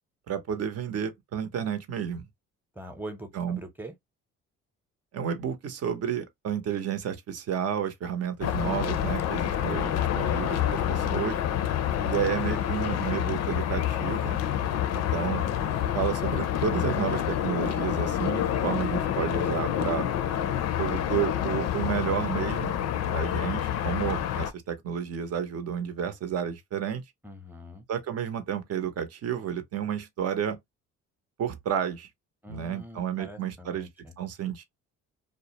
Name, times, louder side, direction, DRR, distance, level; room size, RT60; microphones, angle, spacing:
voice 1, 0.3-2.2 3.3-3.6 5.1-11.4 12.0-14.4 15.1-15.4 15.9-20.1 20.8-22.8 23.1-27.0 27.9-30.6 31.4-32.1 32.5-33.9 34.2-34.6, right 8 dB, 55° right, 0.7 m, -31 dB
voice 2, 2.7-3.9 27.2-27.9 32.4-34.2, right 1 dB, 5° right, 0.7 m, -43 dB
sound 1, 8.4-24.5, left 10 dB, 60° left, 0.5 m, -28 dB
2.3 x 2.0 x 2.8 m
cardioid pair, 90°, 29 cm